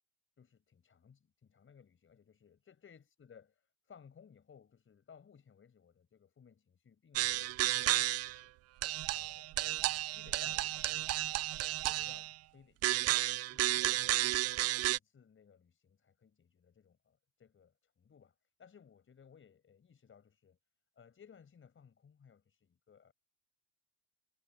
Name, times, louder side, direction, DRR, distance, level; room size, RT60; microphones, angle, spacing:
voice 1, 0.4-3.5 3.8-8.5 9.1-9.8 10.1-11.5 11.8-14.3 14.9-20.6 21.0-23.1, left 7 dB, 25° left, 5.8 m, -61 dB
sound 1, 7.2-8.4 8.8-12.3 12.8-15.0, right 16 dB, 35° right, 0.4 m, -32 dB
supercardioid pair, 120°, 45 cm